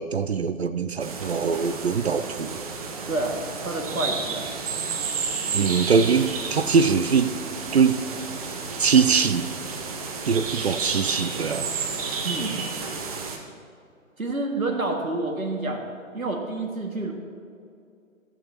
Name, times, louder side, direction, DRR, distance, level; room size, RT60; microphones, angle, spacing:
voice 1, 0.0-2.6 5.5-7.3 7.7-8.0 8.8-9.5 10.3-11.7, right 5 dB, 50° right, 11 dB, 0.6 m, -22 dB
sound 1, 1.0-13.4, right 5 dB, 25° right, 1.0 m, -31 dB
voice 2, 3.1-4.5 12.2-12.6 14.2-15.8 16.1-17.1, right 2 dB, 90° right, 2 dB, 2.2 m, -28 dB
15.0 x 13.5 x 3.0 m, 2.5 s
figure-of-eight pair, 140°, 41 cm